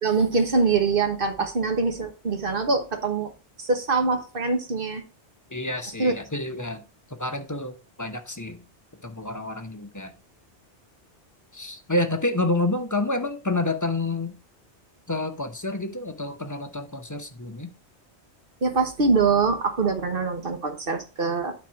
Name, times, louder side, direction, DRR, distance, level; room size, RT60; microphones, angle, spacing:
voice 1, 0.0-3.3 3.6-5.0 6.0-6.1 18.6-21.5, right 4 dB, 55° right, 6 dB, 1.4 m, -24 dB
voice 2, 5.5-6.8 7.1-8.6 9.0-10.1 11.5-14.4 15.1-17.7, left 2 dB, 20° left, 6 dB, 0.8 m, -29 dB
9.1 x 4.3 x 4.6 m, 0.33 s
omnidirectional pair, 1.2 m